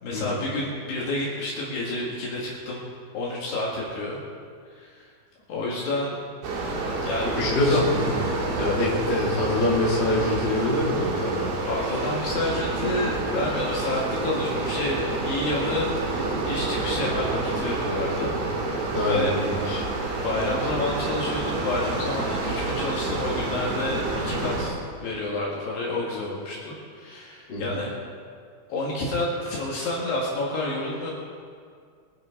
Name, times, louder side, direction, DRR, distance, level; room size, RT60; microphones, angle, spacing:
voice 1, 0.0-2.8 3.1-4.2 4.7-5.1 5.5-6.2 7.0-7.8 11.7-15.9 16.5-19.4 20.2-27.9 28.7-31.2, left 2 dB, 65° left, -4 dB, 3.7 m, -29 dB
sound 1, 6.4-24.7, right 2 dB, 80° right, 4.5 m, -28 dB
voice 2, 7.4-8.2 8.6-11.5 18.9-19.8 27.5-27.6, left 1 dB, 25° left, -6 dB, 3.2 m, -24 dB
24.0 x 10.5 x 4.0 m, 2.1 s
omnidirectional pair, 5.6 m